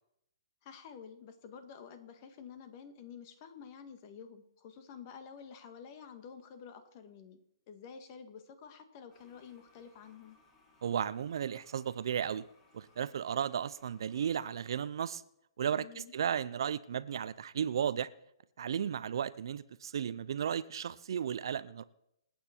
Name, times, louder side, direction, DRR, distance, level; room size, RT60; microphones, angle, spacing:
voice 1, 0.6-7.4 7.7-10.4 15.7-16.1, left 7 dB, 35° left, 2.0 m, -50 dB
Toilet flush, 9.1-14.9, left 2 dB, 15° left, 4.1 m, -67 dB
voice 2, 10.8-12.4 12.7-15.2 15.6-18.1 18.6-21.8, right 8 dB, 60° right, 0.7 m, -34 dB
26.5 x 9.1 x 4.5 m
hypercardioid pair, 150°, 3 cm